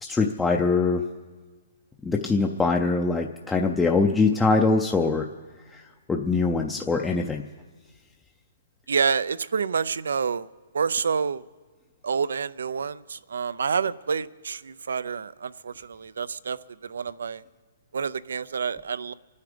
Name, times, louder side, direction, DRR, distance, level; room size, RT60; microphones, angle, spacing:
voice 1, 0.0-1.0 2.0-5.3 5.7-5.8 6.1-7.4, left 3 dB, 5° left, 0.5 m, -23 dB
voice 2, 8.9-10.5 10.7-11.4 12.0-16.6 16.8-17.4 17.9-19.1, right 6 dB, 90° right, 0.5 m, -28 dB
26.0 x 9.7 x 5.1 m
hypercardioid pair, 165°, 0 cm